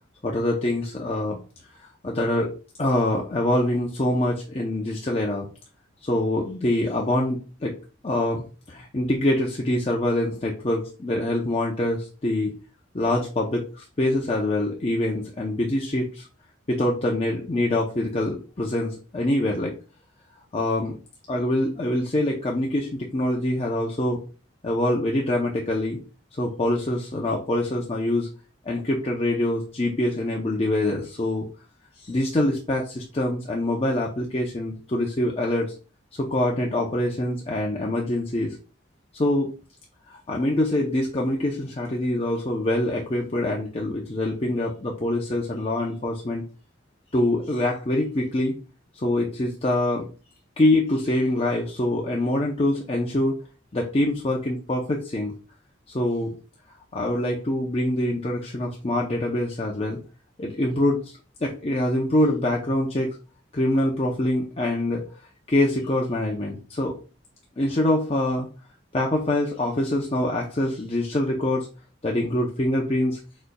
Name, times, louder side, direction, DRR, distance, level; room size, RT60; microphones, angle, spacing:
voice 1, 0.2-1.4 1.8-2.5 2.8-5.5 6.0-7.8 8.0-12.6 12.9-16.3 16.7-19.7 20.5-21.0 21.3-24.2 24.6-26.0 26.4-28.3 28.6-31.5 32.0-35.7 36.2-38.6 39.1-39.5 40.1-46.4 47.1-48.6 48.9-50.0 50.6-53.4 53.7-55.4 55.9-56.4 56.9-60.0 60.4-63.1 63.5-65.0 65.5-67.0 67.6-68.5 68.9-71.7 72.0-73.2, left 1 dB, 30° left, -1 dB, 0.6 m, -25 dB
5.0 x 4.3 x 2.2 m, 0.35 s
head